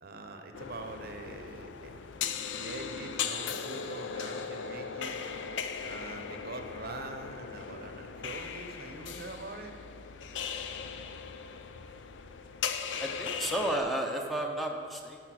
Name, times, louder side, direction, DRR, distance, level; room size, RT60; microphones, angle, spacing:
voice 1, 0.0-1.9 2.6-5.2 5.8-9.8, right 3 dB, 50° right, 5 dB, 0.7 m, -44 dB
sound 1, 0.5-13.8, left 6 dB, 70° left, 0.5 m, -38 dB
voice 2, 13.0-15.2, right 1 dB, ahead, 1 dB, 0.6 m, -32 dB
10.0 x 4.8 x 6.3 m, 2.2 s
head